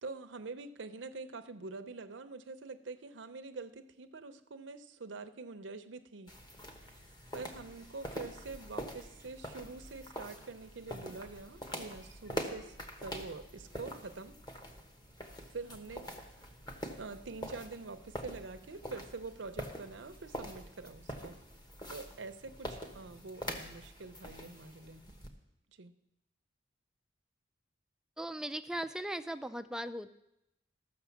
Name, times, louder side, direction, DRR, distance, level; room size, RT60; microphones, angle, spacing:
voice 1, 0.0-6.3 6.8-14.4 15.5-16.4 17.0-21.4 21.9-25.0 25.8-25.9, right 3 dB, 70° right, 8 dB, 0.7 m, -46 dB
sound 1, 6.3-25.3, equal, 20° left, 1.1 m, -45 dB
voice 2, 28.2-30.1, right 1 dB, 5° right, 11 dB, 0.3 m, -38 dB
13.5 x 6.4 x 7.1 m, 0.86 s
head